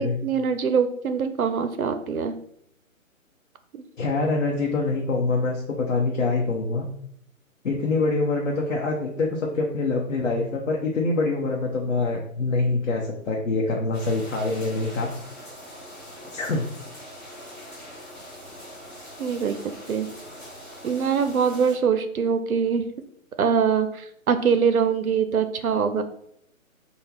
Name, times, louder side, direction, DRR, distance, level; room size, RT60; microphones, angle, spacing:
voice 1, 0.0-2.3 19.2-19.6 19.9-20.1 20.8-22.9 23.4-26.0, right 6 dB, 85° right, 9 dB, 0.5 m, -23 dB
voice 2, 4.0-6.8 7.6-15.1 16.3-16.7, left 3 dB, 70° left, -1 dB, 0.7 m, -25 dB
sound 1, 13.9-21.7, equal, 10° left, 1.0 m, -42 dB
3.6 x 2.1 x 3.2 m, 0.70 s
figure-of-eight pair, 135°, 42 cm